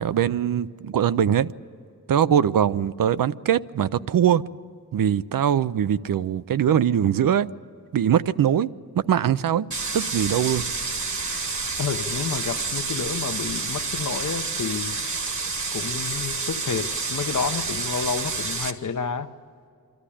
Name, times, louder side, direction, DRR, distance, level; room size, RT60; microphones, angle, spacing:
voice 1, 0.0-1.5 2.1-4.4 4.9-7.5 7.9-8.7 8.9-9.7 9.9-10.6, right 9 dB, 70° right, 0.5 m, -22 dB
sound 1, 9.7-18.7, right 4 dB, 55° right, 1.4 m, -29 dB
voice 2, 11.8-15.0 15.7-19.3, left 6 dB, 60° left, 0.9 m, -30 dB
25.5 x 13.5 x 10.0 m
wide cardioid pair, 135°, 35 cm